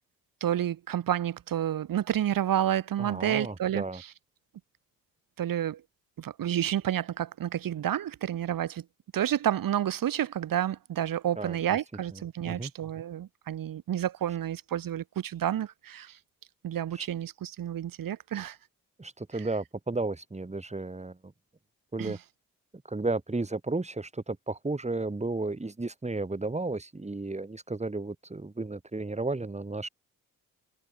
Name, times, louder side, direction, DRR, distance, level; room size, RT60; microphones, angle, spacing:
voice 1, 0.4-4.1 5.4-5.8 6.2-8.8 9.1-16.2 16.6-18.6 19.3-19.4 22.0-22.2, right 11 dB, 70° right, 2.3 m, -30 dB
voice 2, 3.0-4.0 11.4-11.6 12.4-12.7 17.0-17.1 19.0-21.3 21.9-22.2 22.9-29.9, right 3 dB, 20° right, 3.2 m, -33 dB
supercardioid pair, 55°, 36 cm